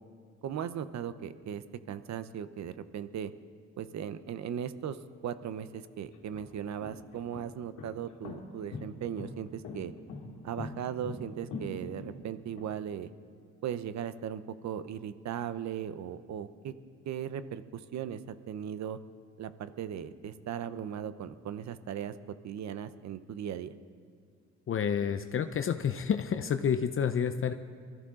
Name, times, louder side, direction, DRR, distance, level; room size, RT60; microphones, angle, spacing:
voice 1, 0.4-3.3 3.8-5.0 5.2-9.9 10.4-13.1 13.6-16.7 17.1-19.0 19.4-22.1 22.4-23.7, right 9 dB, 65° right, 13 dB, 0.8 m, -38 dB
sound 1, 5.4-5.5 6.1-12.7, left 3 dB, 85° left, 1.9 m, -42 dB
voice 2, 24.7-27.5, left 7 dB, 45° left, 9 dB, 0.6 m, -29 dB
23.0 x 13.5 x 3.8 m, 2.2 s
cardioid pair, 90°, 30 cm